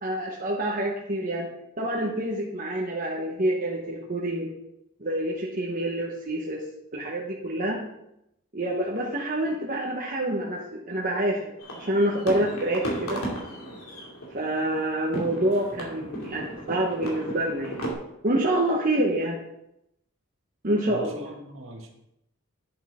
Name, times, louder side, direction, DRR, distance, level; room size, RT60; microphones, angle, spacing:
voice 1, 0.0-1.5 1.8-4.5 5.0-6.6 6.9-7.8 8.5-11.4 11.8-13.2 14.3-17.9 18.2-19.4 20.6-21.3, right 1 dB, 40° right, -2 dB, 1.2 m, -27 dB
sound 1, 11.6-17.9, right 1 dB, 90° left, 2.7 m, -35 dB
voice 2, 20.9-21.9, right 1 dB, 65° right, 2 dB, 1.8 m, -43 dB
10.0 x 7.8 x 3.7 m, 0.82 s
head